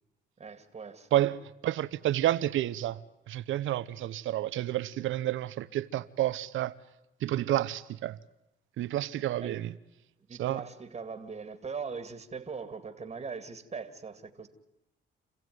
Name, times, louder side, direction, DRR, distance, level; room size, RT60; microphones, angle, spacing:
voice 1, 0.4-1.2 9.4-9.6 10.3-14.5, right 5 dB, 35° right, 2.2 m, -40 dB
voice 2, 1.1-6.7 7.2-8.2 8.8-9.7 10.4-10.6, right 13 dB, 80° right, 0.9 m, -30 dB
28.0 x 15.5 x 9.4 m
cardioid pair, 90°, 20 cm